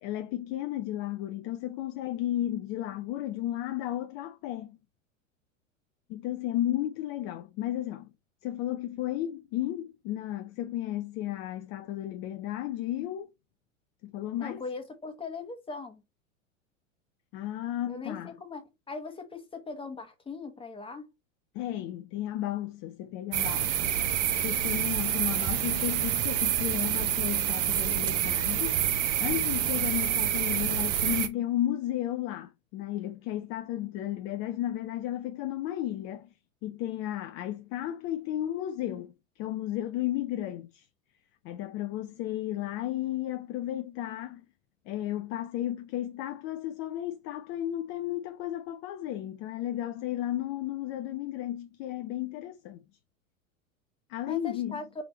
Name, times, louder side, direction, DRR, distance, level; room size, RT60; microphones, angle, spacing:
voice 1, 0.0-4.8 6.1-8.1 8.4-13.3 14.0-14.6 17.3-18.3 21.5-24.1 24.4-28.8 29.2-36.3 36.6-40.9 41.4-44.4 44.9-52.8 54.1-54.8, left 13 dB, 35° left, 0.5 m, -33 dB
voice 2, 14.4-16.0 17.9-21.1 54.3-54.8, left 4 dB, 15° left, 1.3 m, -40 dB
sound 1, 23.3-31.3, right 10 dB, 40° right, 0.8 m, -27 dB
4.9 x 3.3 x 3.0 m
figure-of-eight pair, 90°, 39 cm